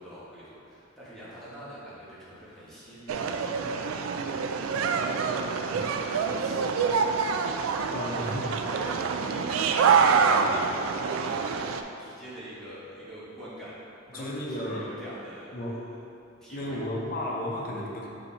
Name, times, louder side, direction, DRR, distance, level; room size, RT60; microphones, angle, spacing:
voice 1, 0.0-6.8 7.2-13.8 14.1-15.8 16.4-16.8, equal, ahead, -10 dB, 1.4 m, -44 dB
sound 1, 3.1-11.8, right 5 dB, 85° right, 0.3 m, -26 dB
voice 2, 7.9-8.7 10.3-10.8 14.1-14.9 15.5-16.0 16.5-18.1, left 1 dB, 45° left, -2 dB, 0.7 m, -34 dB
8.1 x 2.8 x 4.0 m, 2.7 s
head